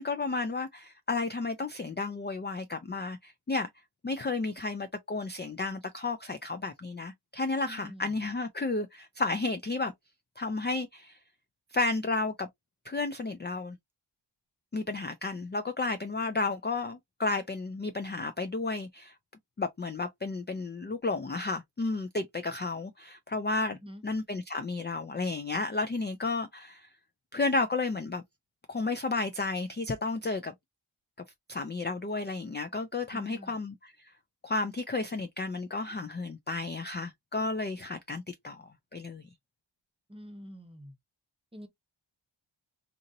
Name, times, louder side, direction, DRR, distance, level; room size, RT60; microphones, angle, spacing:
voice 1, 0.0-3.7 4.0-9.9 10.4-11.2 11.7-12.5 12.9-13.8 14.7-19.1 19.6-23.8 24.0-26.9 27.3-28.2 28.7-30.5 31.5-33.7 34.4-39.3, left 3 dB, 25° left, 0.3 m, -32 dB
voice 2, 7.6-8.1 23.8-24.0 33.1-33.6 40.1-40.9 41.5-41.7, equal, 10° right, 0.7 m, -46 dB
2.8 x 2.6 x 2.5 m
wide cardioid pair, 70°, 47 cm